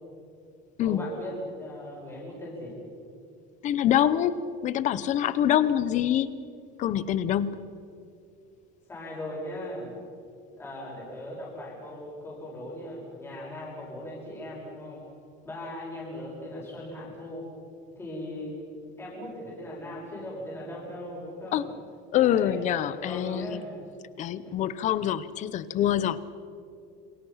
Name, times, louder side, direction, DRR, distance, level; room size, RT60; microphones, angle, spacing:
voice 1, 0.8-2.8 8.9-9.9 10.5-15.0 15.4-17.5 18.0-18.5 19.0-21.7 22.2-23.8 24.4-24.5, left 1 dB, 10° left, -5 dB, 6.3 m, -38 dB
voice 2, 3.6-6.3 6.8-7.7 21.5-21.7 22.1-23.6 24.2-26.2, left 11 dB, 40° left, 15 dB, 0.9 m, -25 dB
29.0 x 26.0 x 5.8 m, 2.5 s
cardioid pair, 180°, 20 cm